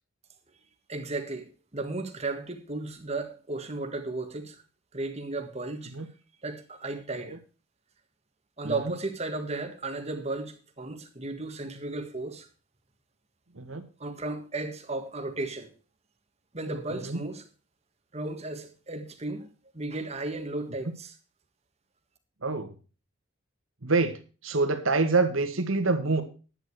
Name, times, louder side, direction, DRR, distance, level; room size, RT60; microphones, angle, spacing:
voice 1, 0.9-4.6 4.9-5.9 6.4-7.4 8.6-12.5 14.0-15.7 16.5-17.4 18.1-21.1, right 2 dB, 30° right, 1.6 m, -34 dB
voice 2, 22.4-22.7 23.8-24.2 24.4-26.2, right 3 dB, 85° right, 1.8 m, -26 dB
11.0 x 9.3 x 4.7 m
head